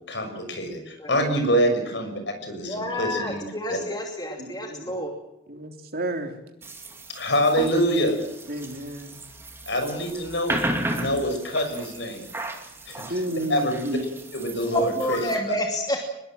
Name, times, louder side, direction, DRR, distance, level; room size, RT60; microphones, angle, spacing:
voice 1, 0.1-3.4 3.7-3.8 7.1-8.2 9.7-10.5 10.9-12.2 12.9-13.0 13.5-13.7 14.3-15.2, equal, 65° left, 6 dB, 6.4 m, -25 dB
voice 2, 2.6-5.1 14.7-16.1, equal, 20° left, 2 dB, 2.6 m, -29 dB
voice 3, 4.4-4.9 5.5-6.3 8.5-9.2 13.1-14.0, right 1 dB, 50° right, 4 dB, 3.4 m, -31 dB
sound 1, 6.6-15.4, right 1 dB, 10° right, 2.6 m, -35 dB
24.0 x 21.0 x 7.7 m, 0.84 s
head